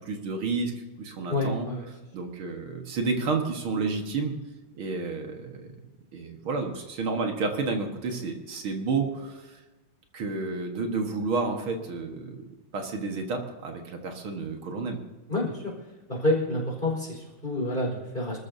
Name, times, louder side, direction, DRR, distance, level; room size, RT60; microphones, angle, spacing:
voice 1, 0.0-1.7 2.1-4.4 4.7-5.7 6.1-9.6 10.1-15.0, right 4 dB, 80° right, 3 dB, 2.4 m, -31 dB
voice 2, 1.3-1.9 15.3-15.7 16.1-18.4, left 1 dB, 25° left, -2 dB, 4.7 m, -28 dB
26.5 x 13.5 x 2.8 m, 1.2 s
omnidirectional pair, 2.3 m